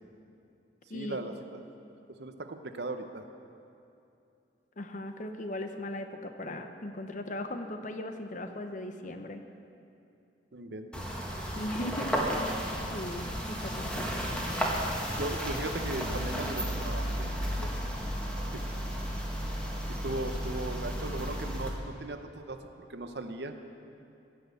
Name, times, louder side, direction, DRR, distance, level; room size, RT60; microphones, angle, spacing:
voice 1, 0.9-1.6 2.1-3.2 10.5-11.0 12.1-12.3 15.1-17.7 18.5-18.6 20.0-22.6 22.9-23.6, right 2 dB, 65° right, 7 dB, 0.8 m, -38 dB
voice 2, 4.8-9.4 11.5-12.4 12.9-14.4, left 1 dB, 45° left, 6 dB, 0.8 m, -38 dB
sound 1, 10.9-21.7, equal, 5° left, 1.5 m, -33 dB
15.5 x 6.2 x 8.2 m, 2.7 s
head